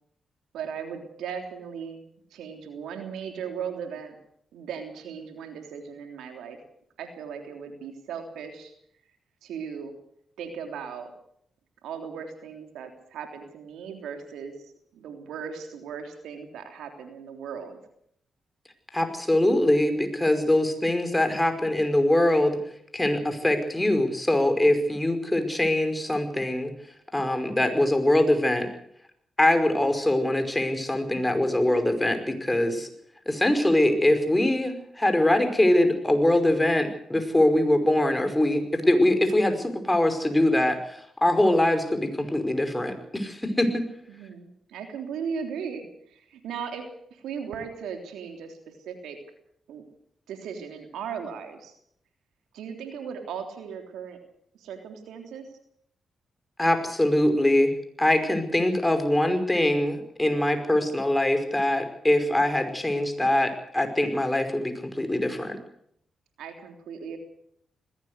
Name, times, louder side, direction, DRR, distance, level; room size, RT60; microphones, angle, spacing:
voice 1, 0.5-2.0 2.3-4.1 4.5-6.6 7.0-8.7 9.4-9.9 10.4-11.1 11.8-17.8 31.1-31.5 44.1-49.2 49.7-49.8 50.3-51.7 52.5-54.2 54.5-55.4 66.4-67.2, right 7 dB, 80° right, 5 dB, 3.4 m, -37 dB
voice 2, 18.9-22.6 22.9-26.7 27.1-28.7 29.4-32.9 33.3-43.8 56.6-57.7 58.0-65.6, left 1 dB, 15° left, 7 dB, 5.3 m, -23 dB
20.5 x 17.0 x 8.2 m, 0.71 s
supercardioid pair, 45°, 0 cm